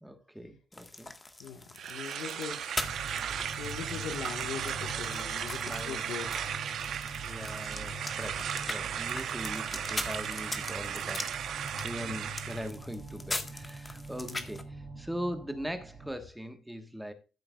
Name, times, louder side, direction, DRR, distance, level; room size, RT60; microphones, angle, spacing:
voice 1, 0.0-1.1 5.6-6.1 7.2-17.1, equal, 5° right, 1.5 m, -41 dB
sound 1, 0.7-14.6, left 2 dB, 20° left, 1.6 m, -42 dB
voice 2, 1.4-2.8 3.6-6.4 11.9-12.2 14.3-14.4, left 7 dB, 80° left, 1.6 m, -41 dB
sound 2, 1.8-12.7, right 9 dB, 70° right, 1.0 m, -36 dB
sound 3, 2.8-16.1, right 2 dB, 25° right, 2.6 m, -44 dB
14.0 x 7.5 x 2.4 m
cardioid pair, 90°, 0 cm